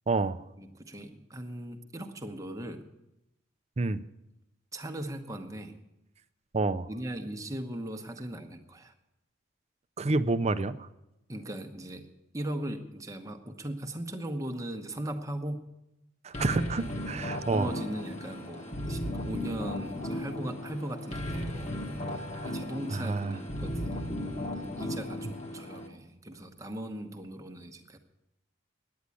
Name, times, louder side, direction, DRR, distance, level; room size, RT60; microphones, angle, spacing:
voice 1, 0.1-0.4 3.8-4.0 6.5-6.9 10.0-10.9 16.2-17.7 22.4-22.5 22.9-23.4, right 3 dB, 30° right, 13 dB, 0.5 m, -29 dB
voice 2, 0.6-2.9 4.7-5.7 6.9-8.9 11.3-12.1 12.3-15.6 17.5-21.7 22.4-24.0 24.6-28.0, right 1 dB, 15° right, 4 dB, 1.0 m, -38 dB
sound 1, 16.3-25.9, left 1 dB, 30° left, 1.4 m, -36 dB
9.8 x 9.5 x 9.8 m, 0.91 s
head